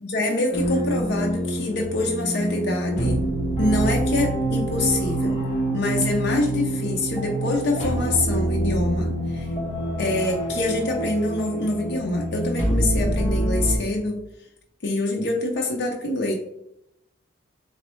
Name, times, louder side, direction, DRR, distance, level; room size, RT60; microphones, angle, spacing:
voice 1, 0.0-3.2 3.6-5.4 5.7-9.5 10.0-14.2 14.8-16.3, left 2 dB, 55° left, 0 dB, 0.5 m, -25 dB
sound 1, 0.5-13.8, right 1 dB, 35° left, 1.1 m, -26 dB
4.3 x 3.0 x 3.0 m, 0.81 s
head